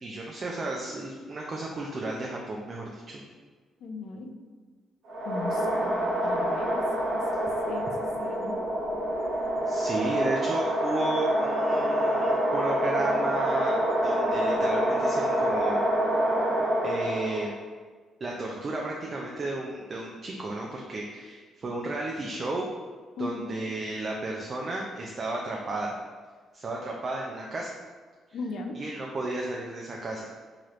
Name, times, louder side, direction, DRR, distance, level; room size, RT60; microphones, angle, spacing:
voice 1, 0.0-3.2 9.7-15.8 16.8-17.6 18.2-22.7 23.2-25.9 26.5-27.7 28.7-30.3, right 2 dB, 40° right, -2 dB, 0.4 m, -33 dB
voice 2, 3.8-4.3 5.2-6.8 7.1-7.9 8.2-8.5 23.2-23.5 28.3-28.8, left 3 dB, 65° left, 4 dB, 0.4 m, -37 dB
sound 1, 5.1-17.5, equal, 85° right, 1.0 m, -27 dB
3.0 x 2.9 x 2.4 m, 1.5 s
cardioid pair, 90°, 0 cm